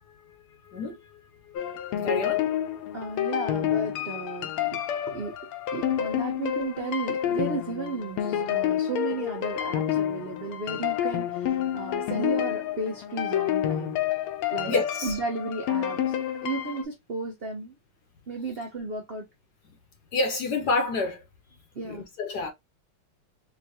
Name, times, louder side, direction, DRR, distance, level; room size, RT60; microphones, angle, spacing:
voice 1, 0.6-1.2 1.5-1.6 2.0-2.5 14.7-15.2 20.1-21.2 21.8-22.5, left 3 dB, 65° left, 1.1 m, -28 dB
sound 1, 1.6-16.8, left 10 dB, 85° left, 1.5 m, -29 dB
voice 2, 2.9-4.8 5.1-5.3 5.7-13.9 14.5-16.2 16.4-17.8 18.3-19.2 21.7-22.1, right 3 dB, 65° right, 0.5 m, -34 dB
4.5 x 2.5 x 2.8 m
omnidirectional pair, 2.3 m